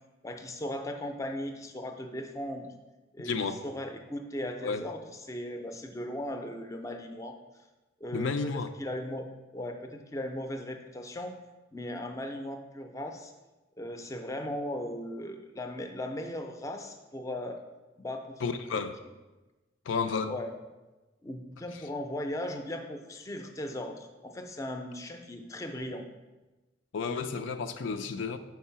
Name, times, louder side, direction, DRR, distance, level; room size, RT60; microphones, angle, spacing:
voice 1, 0.2-2.7 3.1-3.3 3.6-7.4 8.0-9.3 9.5-11.4 11.7-13.3 13.8-17.6 18.0-18.4 18.7-18.8 20.3-20.5 21.2-26.0, left 1 dB, 15° left, 5 dB, 0.5 m, -37 dB
voice 2, 3.2-3.6 4.6-4.8 8.1-8.7 18.4-19.0 19.9-20.3 26.9-28.4, left 5 dB, 85° left, 9 dB, 0.4 m, -31 dB
4.7 x 4.6 x 5.6 m, 1.1 s
head